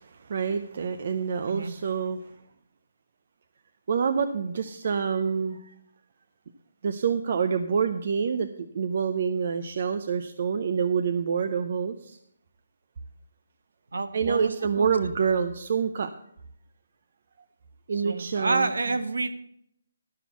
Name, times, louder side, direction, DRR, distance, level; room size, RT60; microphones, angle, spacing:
voice 1, 0.0-2.3 3.9-5.7 6.8-8.5 8.7-12.2 14.1-16.1 17.9-18.7, right 6 dB, 30° right, 8 dB, 0.5 m, -27 dB
voice 2, 13.9-15.0 17.9-19.4, right 3 dB, 80° right, 8 dB, 1.4 m, -29 dB
12.0 x 6.0 x 6.9 m, 0.71 s
hypercardioid pair, 180°, 0 cm